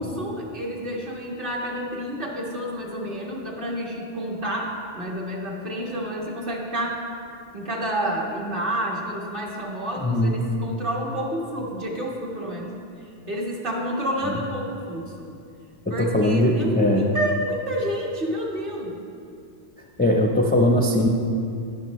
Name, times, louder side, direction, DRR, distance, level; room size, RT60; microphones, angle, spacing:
voice 1, 0.0-7.0 7.5-12.8 13.3-15.3 15.9-19.0, equal, 45° right, -3 dB, 1.6 m, -29 dB
voice 2, 10.0-10.4 15.9-17.1 20.0-21.1, left 1 dB, 10° left, 0 dB, 0.4 m, -20 dB
11.5 x 10.0 x 3.1 m, 2.4 s
omnidirectional pair, 1.2 m